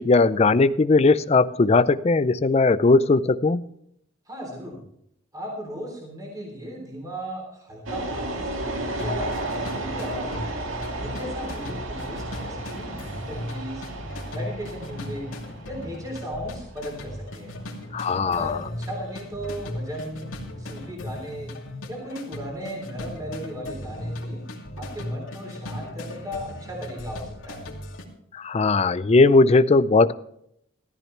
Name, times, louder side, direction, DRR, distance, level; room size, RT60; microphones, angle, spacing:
voice 1, 0.0-3.6 17.9-18.6 28.3-30.1, left 3 dB, 30° left, 14 dB, 0.4 m, -18 dB
voice 2, 4.3-4.8 5.3-10.4 11.0-13.8 14.3-15.3 15.7-17.6 18.2-20.3 20.6-21.5 21.9-24.4 24.8-27.7, equal, 20° right, -1 dB, 3.5 m, -36 dB
sound 1, 7.9-20.9, right 2 dB, 90° right, 1.8 m, -34 dB
sound 2, 9.0-28.0, left 1 dB, 85° left, 2.6 m, -37 dB
15.0 x 13.5 x 3.3 m, 0.72 s
head